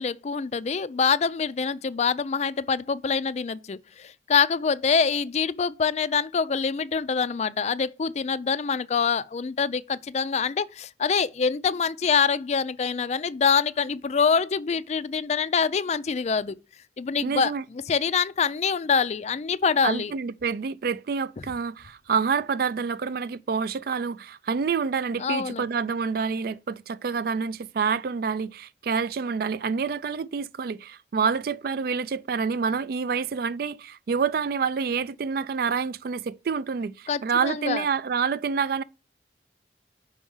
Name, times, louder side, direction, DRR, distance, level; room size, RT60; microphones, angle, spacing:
voice 1, 0.0-16.6 17.0-20.1 25.2-25.6 37.1-37.8, left 6 dB, 40° left, 0.3 m, -25 dB
voice 2, 17.2-17.6 19.8-38.8, right 5 dB, 55° right, 0.3 m, -27 dB
5.2 x 4.8 x 5.4 m
head